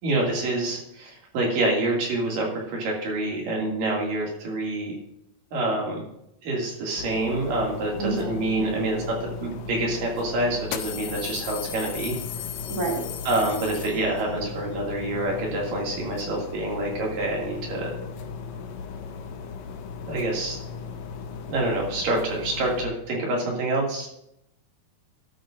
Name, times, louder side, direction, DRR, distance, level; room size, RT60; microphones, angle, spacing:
voice 1, 0.0-4.9 5.5-6.1 6.4-12.2 13.3-17.9 20.1-20.6 21.5-24.1, right 2 dB, 70° right, -2 dB, 3.9 m, -27 dB
sound 1, 7.0-22.8, left 5 dB, 75° left, 1.6 m, -37 dB
voice 2, 8.0-8.8 12.7-13.0, right 3 dB, 10° right, -2 dB, 1.6 m, -29 dB
sound 2, 9.5-9.6 10.6-14.4, left 11 dB, 90° left, 2.5 m, -36 dB
13.5 x 12.5 x 2.5 m, 0.80 s
omnidirectional pair, 4.1 m